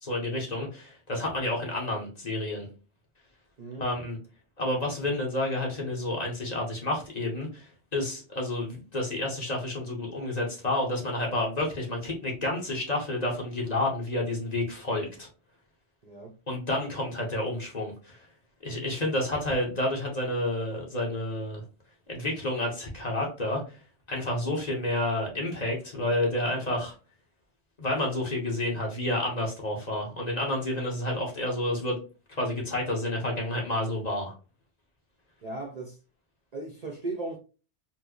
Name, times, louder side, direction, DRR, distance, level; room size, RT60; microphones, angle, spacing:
voice 1, 0.0-2.7 3.8-4.2 4.6-15.3 16.5-18.2 18.6-21.6 22.1-23.8 24.1-26.9 27.8-32.0 32.3-34.3, left 1 dB, 40° left, 1.0 m, -30 dB
voice 2, 16.0-16.3 35.4-36.0 36.5-37.4, right 2 dB, 45° right, 0.5 m, -36 dB
4.3 x 2.0 x 2.9 m
omnidirectional pair, 1.2 m